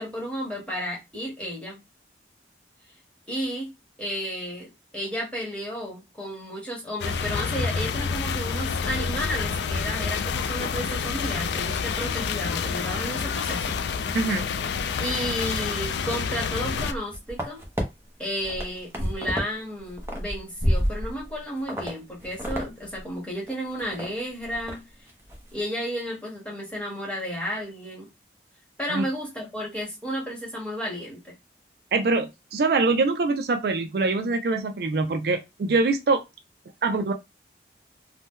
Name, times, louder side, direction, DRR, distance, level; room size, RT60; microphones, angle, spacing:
voice 1, 0.0-1.8 3.3-3.7 4.0-13.8 15.0-17.7 18.2-24.8 25.5-28.1 28.8-31.3, equal, 5° left, 1.1 m, -32 dB
sound 1, 7.0-16.9, left 5 dB, 70° left, 0.3 m, -28 dB
voice 2, 14.1-14.5 28.9-29.0 31.9-36.2 36.8-37.1, right 3 dB, 55° right, 0.4 m, -24 dB
sound 2, 16.7-17.8 18.3-19.5 19.8-21.3 21.7-21.9 22.2-22.7 22.9-23.0 23.5-24.1 24.4-24.8 25.1-25.4, equal, 15° right, 0.6 m, -29 dB
2.7 x 2.1 x 3.6 m
head